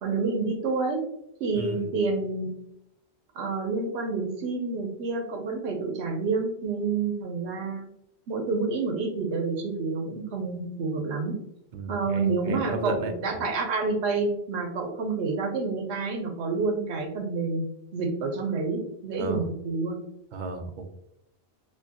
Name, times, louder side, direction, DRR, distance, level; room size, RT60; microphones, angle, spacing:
voice 1, 0.0-1.0 1.4-2.5 3.3-7.9 8.3-11.4 11.9-20.0, right 4 dB, 85° right, 4 dB, 0.9 m, -28 dB
voice 2, 1.5-1.9 11.7-13.4 19.2-19.5 20.3-20.9, right 2 dB, 55° right, 6 dB, 0.6 m, -34 dB
4.6 x 2.2 x 2.8 m, 0.78 s
omnidirectional pair, 1.1 m